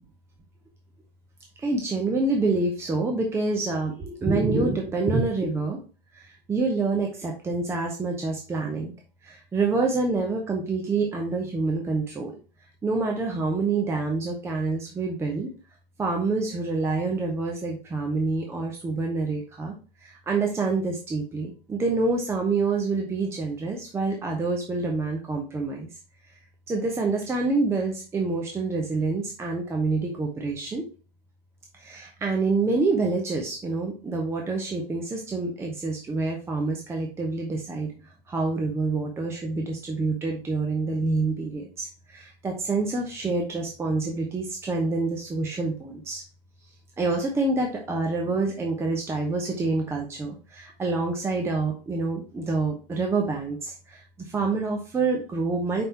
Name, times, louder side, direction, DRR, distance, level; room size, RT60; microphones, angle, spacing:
voice 1, 1.6-5.8 6.1-8.9 9.2-12.3 12.8-15.5 16.0-19.7 20.0-25.9 26.7-30.8 31.7-46.2 47.0-55.8, right 3 dB, 10° right, 1 dB, 0.7 m, -27 dB
5.4 x 4.2 x 4.2 m, 0.36 s
figure-of-eight pair, 100°, 29 cm